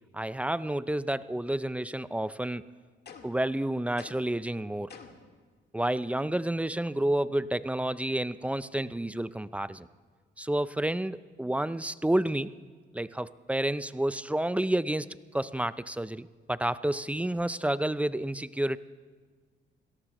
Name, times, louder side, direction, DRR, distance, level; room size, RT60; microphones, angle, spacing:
voice 1, 0.1-2.7 3.2-4.9 5.7-9.9 10.4-12.5 12.9-15.1 15.3-18.8, right 1 dB, 5° right, 15 dB, 0.4 m, -30 dB
sound 1, 3.1-3.5 4.0-4.4 4.9-5.3, left 6 dB, 55° left, 1.8 m, -48 dB
26.5 x 18.0 x 3.0 m, 1.5 s
cardioid pair, 90°, 20 cm